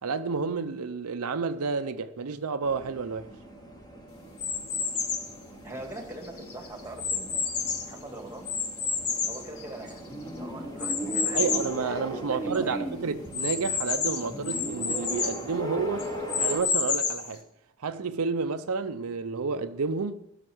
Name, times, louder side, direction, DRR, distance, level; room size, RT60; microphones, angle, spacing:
voice 1, 0.0-3.3 11.3-16.1 16.4-17.4 17.8-20.2, right 4 dB, 85° right, 0.6 m, -30 dB
sound 1, 2.6-16.6, right 1 dB, 20° left, 2.5 m, -38 dB
sound 2, 4.4-5.3 6.0-8.0 8.5-10.1 10.8-11.8 12.2-12.3 12.5-12.6 13.3-15.4 16.0-17.3, left 5 dB, 80° left, 1.9 m, -29 dB
voice 2, 5.6-7.5 7.8-8.5 9.3-11.4 11.8-12.9, right 1 dB, 10° right, 2.0 m, -42 dB
15.5 x 6.6 x 7.8 m
head